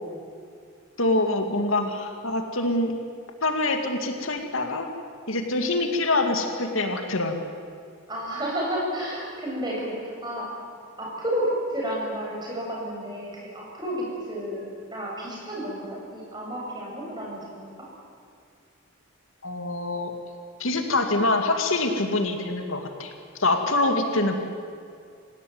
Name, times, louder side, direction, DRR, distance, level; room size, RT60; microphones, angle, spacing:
voice 1, 1.0-2.9 3.4-4.9 5.3-7.4 19.4-20.1 20.6-23.1 23.4-24.3, left 2 dB, 75° left, 5 dB, 2.3 m, -25 dB
voice 2, 8.1-10.5 11.0-14.6 14.9-17.7 23.8-24.4, equal, 20° right, -3 dB, 7.6 m, -31 dB
27.0 x 17.0 x 9.5 m, 2.3 s
head